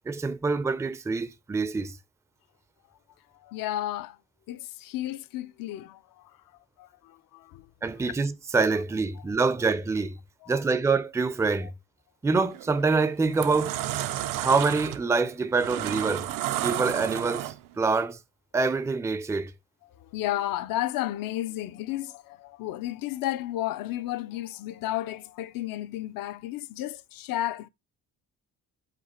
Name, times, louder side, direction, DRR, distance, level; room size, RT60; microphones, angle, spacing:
voice 1, 0.1-2.0 7.8-10.2 10.5-11.7 12.2-13.8 14.4-16.3 16.6-18.2 18.5-19.5, right 4 dB, 10° right, 0.4 m, -26 dB
voice 2, 3.4-4.2 4.5-6.4 6.8-7.7 10.4-10.6 11.6-11.7 19.9-27.7, left 14 dB, 65° left, 0.5 m, -33 dB
sound 1, 12.4-12.7 13.2-17.8, right 13 dB, 65° right, 0.5 m, -32 dB
5.1 x 2.5 x 4.1 m
supercardioid pair, 65°, 36 cm